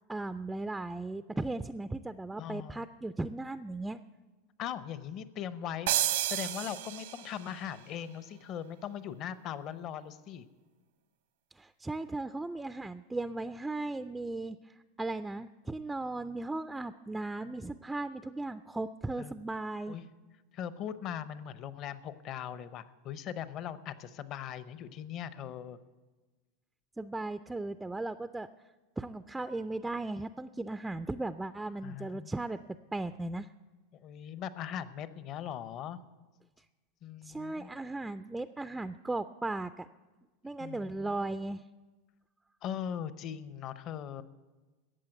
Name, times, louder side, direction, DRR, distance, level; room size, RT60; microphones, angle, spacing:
voice 1, 0.1-4.0 11.5-20.0 27.0-28.5 29.0-32.6 32.9-33.5 36.6-36.7 37.2-39.9 40.4-41.6, right 2 dB, 10° right, 11 dB, 0.3 m, -37 dB
voice 2, 2.4-2.8 4.6-10.5 19.2-19.3 19.9-20.0 20.5-25.8 31.8-32.3 33.9-36.0 37.0-37.7 40.6-41.1 42.6-44.2, left 9 dB, 45° left, 14 dB, 0.7 m, -40 dB
sound 1, 5.9-7.5, right 13 dB, 80° right, 0.9 m, -31 dB
14.0 x 8.4 x 7.8 m, 1.3 s
supercardioid pair, 120°, 0 cm